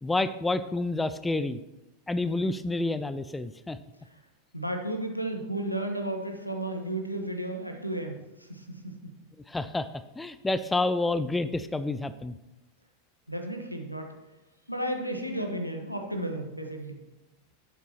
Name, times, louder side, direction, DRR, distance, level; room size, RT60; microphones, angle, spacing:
voice 1, 0.0-1.6 2.1-3.8 9.5-9.9 10.2-12.3, left 2 dB, 10° left, 13 dB, 0.4 m, -29 dB
voice 2, 4.5-9.1 13.3-14.1 14.7-17.0, right 1 dB, 90° left, 4 dB, 1.1 m, -33 dB
12.0 x 8.2 x 2.9 m, 1.0 s
figure-of-eight pair, 90°, 0 cm